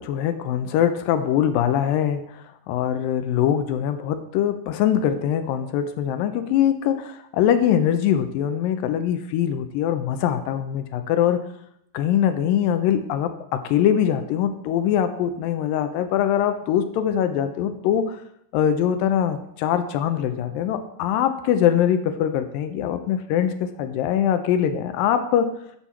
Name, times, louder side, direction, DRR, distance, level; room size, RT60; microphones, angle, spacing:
voice 1, 0.0-2.2 2.7-11.4 11.9-18.2 18.5-25.5, left 9 dB, 80° left, 9 dB, 2.3 m, -22 dB
8.9 x 4.5 x 7.0 m, 0.72 s
omnidirectional pair, 4.1 m